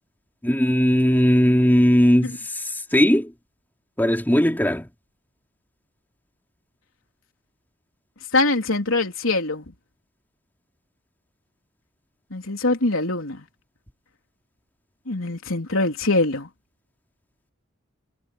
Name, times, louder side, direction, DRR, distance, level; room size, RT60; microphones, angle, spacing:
voice 1, 0.4-3.3 4.0-4.9, equal, 10° left, 3.1 m, -18 dB
voice 2, 8.3-9.6 12.3-13.4 15.1-16.5, left 2 dB, 90° left, 3.6 m, -23 dB
head